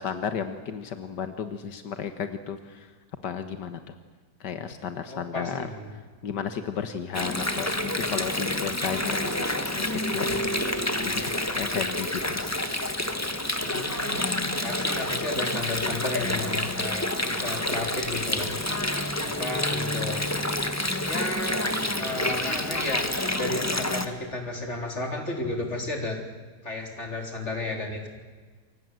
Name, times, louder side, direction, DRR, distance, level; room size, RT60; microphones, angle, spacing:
voice 1, 0.0-2.9 3.2-4.0 4.4-12.4, left 7 dB, 85° left, 8 dB, 1.9 m, -34 dB
voice 2, 5.1-5.9 10.3-10.5 13.6-14.2 14.6-18.5 19.2-20.2 21.0-26.2 26.6-28.1, left 2 dB, 40° left, 2 dB, 4.3 m, -33 dB
Water, 7.1-24.1, left 1 dB, 10° left, 1.5 m, -28 dB
28.5 x 25.0 x 7.7 m, 1.5 s
omnidirectional pair, 1.8 m